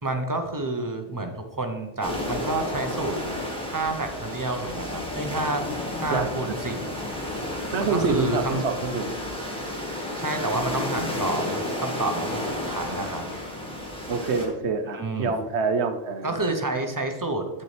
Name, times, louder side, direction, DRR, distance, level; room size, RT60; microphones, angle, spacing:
voice 1, 0.0-5.7 6.0-6.9 7.8-8.6 10.2-13.4 14.9-15.3 16.2-17.6, right 2 dB, 20° right, 5 dB, 0.7 m, -29 dB
sound 1, 2.0-14.5, left 1 dB, 5° left, 1.5 m, -31 dB
voice 2, 6.1-6.5 7.7-9.1 14.1-16.4, right 4 dB, 65° right, 7 dB, 1.0 m, -26 dB
8.5 x 6.8 x 3.3 m, 1.0 s
omnidirectional pair, 1.3 m